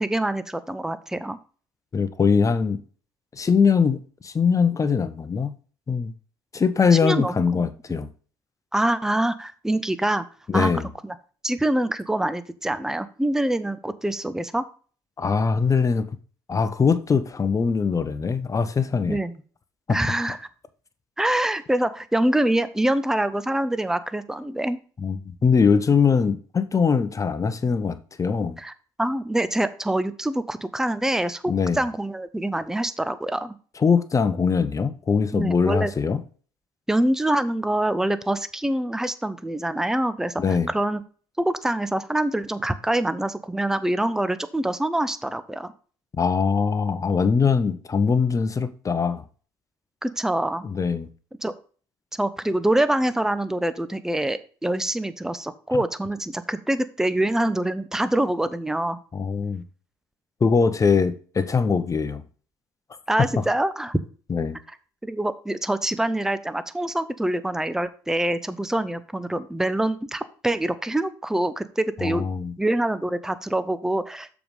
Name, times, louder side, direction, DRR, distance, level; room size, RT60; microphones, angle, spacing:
voice 1, 0.0-1.4 6.9-7.6 8.7-10.2 10.5-10.7 11.0-11.1 11.4-14.6 19.1-19.3 19.9-20.5 21.2-24.8 28.6-28.7 29.0-33.5 35.3-35.9 36.9-41.0 41.4-45.7 50.0-50.6 51.4-51.5 52.2-59.0 63.1-64.0 65.0-72.2 72.6-74.3, right 1 dB, 5° right, 0.7 m, -25 dB
voice 2, 1.9-2.8 3.3-5.5 5.9-6.1 6.5-8.1 10.5-10.9 15.2-16.1 16.5-19.2 25.0-28.6 31.5-31.8 33.8-36.2 40.4-40.7 46.1-49.2 50.6-51.1 59.1-59.6 60.4-62.2 63.2-63.3 64.3-64.6 72.0-72.5, left 5 dB, 30° left, 0.9 m, -22 dB
7.0 x 4.9 x 5.4 m
hypercardioid pair, 65°, 11 cm